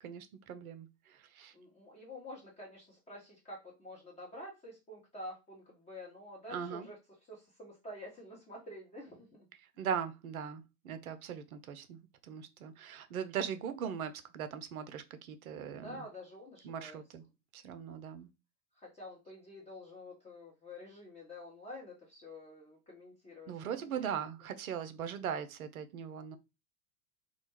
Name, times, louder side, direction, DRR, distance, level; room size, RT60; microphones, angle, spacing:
voice 1, 0.0-1.5 6.5-6.9 9.8-16.0 16.6-17.2 17.5-18.3 23.5-26.4, right 8 dB, 75° right, 0.5 m, -40 dB
voice 2, 1.5-7.0 7.3-9.5 9.7-9.9 15.8-17.0 18.7-24.1, left 1 dB, 15° left, 0.7 m, -49 dB
2.3 x 2.1 x 3.0 m
figure-of-eight pair, 80°, 43 cm